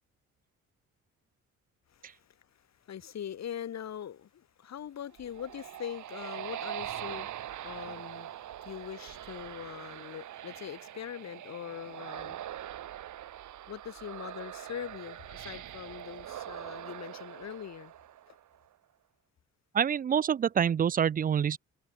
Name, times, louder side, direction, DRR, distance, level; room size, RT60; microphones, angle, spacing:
voice 1, 1.9-7.3 7.6-12.4 13.7-17.9 18.3-18.4, left 9 dB, 60° left, 4.9 m, -42 dB
sound 1, 5.0-18.6, right 12 dB, 75° right, 5.6 m, -42 dB
voice 2, 19.7-21.6, right 8 dB, 30° right, 0.4 m, -26 dB
cardioid pair, 90°, 30 cm